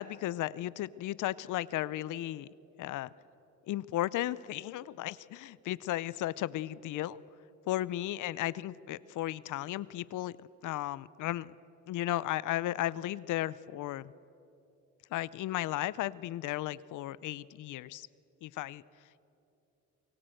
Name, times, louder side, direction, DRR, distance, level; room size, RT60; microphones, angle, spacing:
voice 1, 0.0-2.5 2.8-3.1 3.7-7.2 7.7-10.3 10.6-11.5 11.9-14.1 15.1-18.1 18.4-18.8, left 14 dB, 80° left, 19 dB, 0.6 m, -35 dB
24.5 x 23.0 x 7.8 m, 2.9 s
cardioid pair, 90°, 30 cm